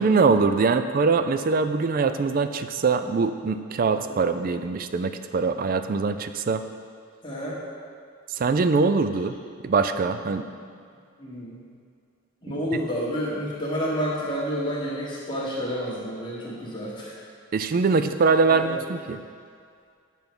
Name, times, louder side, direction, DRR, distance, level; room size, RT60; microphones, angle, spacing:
voice 1, 0.0-6.6 8.4-9.3 9.6-10.4 12.5-12.6 17.5-19.2, right 4 dB, 40° right, 10 dB, 0.3 m, -23 dB
voice 2, 7.2-7.6 11.2-11.6 12.4-17.2 18.5-18.8, equal, 20° left, -6 dB, 1.6 m, -30 dB
9.0 x 4.6 x 5.2 m, 2.2 s
head